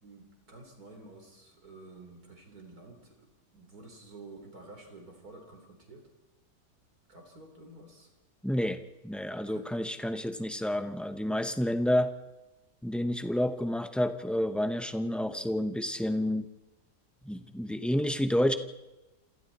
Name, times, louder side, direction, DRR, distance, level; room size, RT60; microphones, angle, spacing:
voice 1, 0.0-6.0 7.1-8.1 9.4-9.7, right 2 dB, 60° right, 3 dB, 4.5 m, -51 dB
voice 2, 8.4-12.1 12.8-16.5 17.2-18.5, left 1 dB, ahead, 8 dB, 0.4 m, -29 dB
27.5 x 27.0 x 4.3 m, 1.1 s
omnidirectional pair, 1.8 m